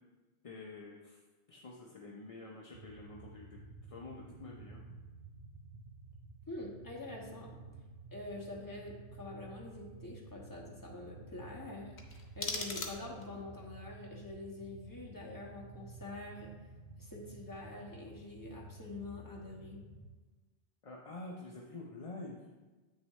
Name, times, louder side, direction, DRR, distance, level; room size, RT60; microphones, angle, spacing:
voice 1, 0.4-1.2 1.5-4.8 20.8-22.4, left 2 dB, 40° left, -1 dB, 0.6 m, -48 dB
sound 1, 2.7-20.1, right 3 dB, 45° right, 0.6 m, -52 dB
voice 2, 6.5-7.6 8.1-16.5 17.0-19.8, left 2 dB, 15° left, -3 dB, 1.3 m, -46 dB
sound 2, 11.9-13.4, left 4 dB, 65° left, 1.2 m, -40 dB
8.4 x 6.4 x 3.1 m, 1.3 s
omnidirectional pair, 1.2 m